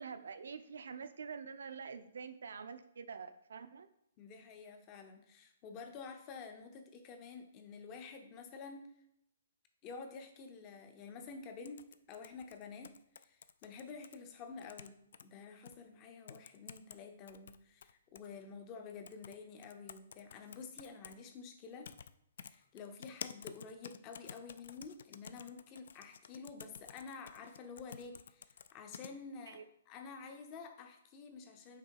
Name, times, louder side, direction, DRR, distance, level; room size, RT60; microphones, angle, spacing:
voice 1, 0.0-3.9 29.5-29.6, right 6 dB, 80° right, 11 dB, 0.6 m, -46 dB
voice 2, 4.2-8.9 9.8-21.9 22.4-31.8, left 5 dB, 20° left, 6 dB, 0.6 m, -50 dB
sound 1, 11.6-14.2 14.6-15.2 15.7-15.8 16.3-17.0 17.3-18.3 19.1-19.4 19.6-21.2 21.8-22.1 22.4-29.1, left 7 dB, 55° left, 0.3 m, -51 dB
5.9 x 3.9 x 4.6 m, 0.76 s
hypercardioid pair, 175°, 0 cm